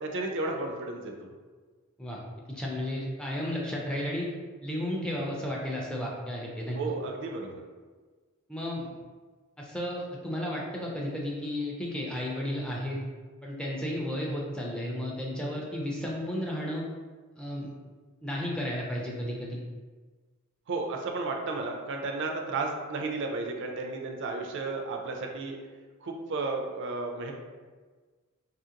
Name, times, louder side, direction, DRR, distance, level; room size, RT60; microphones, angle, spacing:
voice 1, 0.0-1.1 6.8-7.6 20.7-25.6 26.0-27.3, right 3 dB, 60° right, 2 dB, 0.4 m, -33 dB
voice 2, 2.5-4.3 4.6-6.8 8.5-8.9 9.6-13.0 13.4-16.8 17.4-17.7 18.2-19.6, left 1 dB, 5° left, -3 dB, 0.4 m, -33 dB
2.8 x 2.5 x 2.8 m, 1.4 s
head